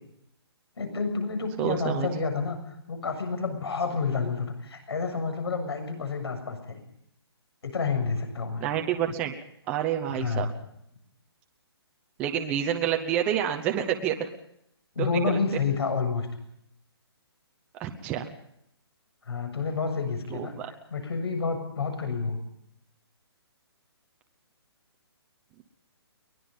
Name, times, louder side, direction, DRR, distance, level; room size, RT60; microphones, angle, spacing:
voice 1, 0.8-2.6 2.9-6.8 7.6-8.6 10.1-10.5 15.0-16.3 19.2-20.5 20.9-22.4, left 4 dB, 70° left, 7 dB, 7.2 m, -29 dB
voice 2, 1.6-2.1 8.6-9.3 9.7-10.5 12.2-14.3 15.0-15.4 17.7-18.3 20.3-20.7, right 10 dB, 10° right, 4 dB, 0.8 m, -28 dB
23.5 x 20.5 x 5.4 m, 0.75 s
hypercardioid pair, 180°, 14 cm